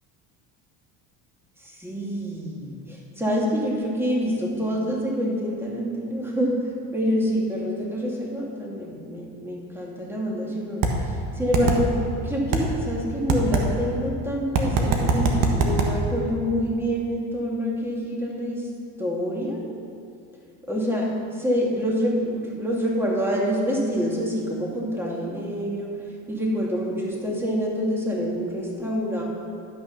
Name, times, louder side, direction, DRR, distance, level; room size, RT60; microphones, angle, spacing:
voice 1, 1.6-6.6 6.9-11.9 12.2-18.6 19.0-19.6 20.7-25.9 26.3-29.2, equal, 5° right, -3 dB, 2.2 m, -26 dB
sound 1, 10.8-10.9 11.5-11.8 12.5-12.6 13.3-13.6 14.6-15.9, right 5 dB, 55° right, 1.4 m, -20 dB
11.5 x 6.3 x 5.8 m, 2.4 s
cardioid pair, 110°, 37 cm